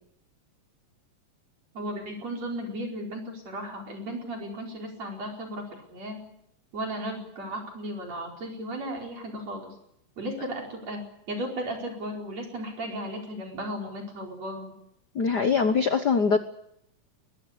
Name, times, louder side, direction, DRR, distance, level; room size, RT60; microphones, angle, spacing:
voice 1, 1.7-5.6 5.9-6.3 6.7-9.7 10.2-14.7, right 1 dB, 50° right, 0 dB, 5.9 m, -35 dB
voice 2, 15.1-16.4, left 5 dB, 85° left, 8 dB, 0.9 m, -22 dB
21.5 x 21.0 x 8.2 m, 0.75 s
omnidirectional pair, 3.7 m